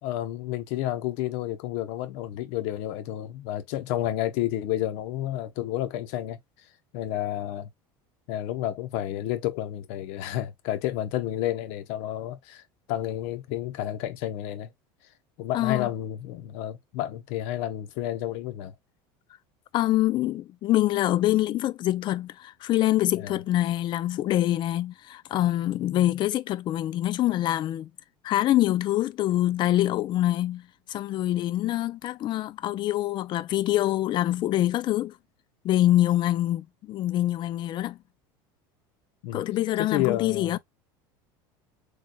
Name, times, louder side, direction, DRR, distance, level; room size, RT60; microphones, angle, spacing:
voice 1, 0.0-6.4 6.9-7.7 8.3-12.6 12.9-14.7 15.4-18.7 23.1-23.4 39.2-39.4 39.8-40.6, left 13 dB, 65° left, 0.8 m, -30 dB
voice 2, 15.5-15.9 19.7-27.9 28.2-35.1 35.6-38.0 39.3-40.6, left 14 dB, 40° left, 0.4 m, -25 dB
4.0 x 3.2 x 2.2 m
supercardioid pair, 115°, 12 cm